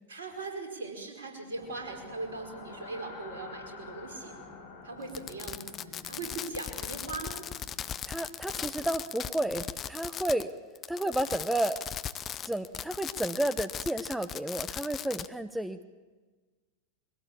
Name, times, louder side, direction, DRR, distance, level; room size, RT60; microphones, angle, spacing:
voice 1, 0.1-4.4 4.8-7.4, right 3 dB, 65° right, 3 dB, 4.7 m, -40 dB
sound 1, 1.5-9.5, left 3 dB, 55° left, 7.1 m, -50 dB
Fireworks, 5.1-10.5 10.8-15.3, left 9 dB, 25° left, 0.7 m, -38 dB
voice 2, 8.1-10.5 10.9-11.8 12.5-15.8, right 1 dB, 5° right, 11 dB, 0.9 m, -31 dB
22.5 x 17.0 x 8.5 m, 1.3 s
figure-of-eight pair, 90°, 0 cm